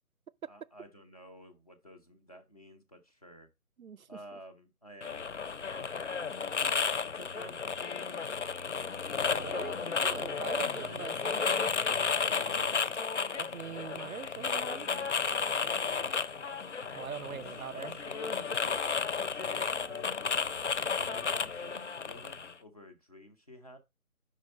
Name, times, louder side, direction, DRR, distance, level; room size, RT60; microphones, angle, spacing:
voice 1, 0.5-3.5 4.1-5.4 5.7-6.1 6.6-8.3 9.2-11.1 12.4-13.7 14.6-16.1 17.3-20.2 20.8-23.8, equal, 25° left, 0.8 m, -52 dB
sound 1, 5.0-22.5, left 5 dB, 55° left, 0.5 m, -33 dB
voice 2, 9.4-11.7 13.4-14.9 16.9-18.0, right 7 dB, 70° right, 0.5 m, -42 dB
5.2 x 4.7 x 5.1 m
figure-of-eight pair, 155°, 44 cm